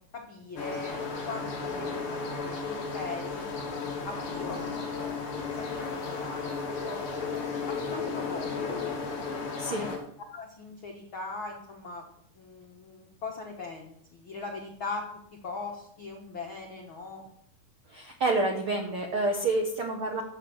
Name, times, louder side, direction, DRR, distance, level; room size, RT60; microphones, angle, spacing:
voice 1, 0.1-1.0 1.3-3.5 4.0-5.1 5.6-6.5 6.9-7.0 7.7-9.0 9.6-9.9 10.3-12.0 12.3-15.0 15.4-17.2, left 3 dB, 70° left, 0 dB, 1.1 m, -40 dB
sound 1, 0.6-10.0, left 4 dB, 40° left, 2.5 m, -34 dB
voice 2, 17.9-20.2, right 2 dB, 75° right, 3 dB, 1.2 m, -28 dB
13.5 x 6.6 x 7.2 m, 0.73 s
omnidirectional pair, 4.5 m